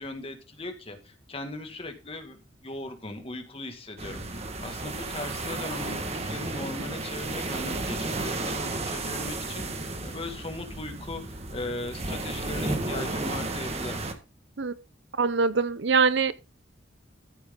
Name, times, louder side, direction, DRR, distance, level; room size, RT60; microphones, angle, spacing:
voice 1, 0.0-14.0, left 2 dB, 30° left, 2.1 m, -38 dB
sound 1, 4.0-14.1, right 2 dB, 35° right, 1.7 m, -33 dB
voice 2, 15.2-16.3, right 5 dB, 70° right, 0.7 m, -23 dB
14.0 x 8.1 x 3.8 m
head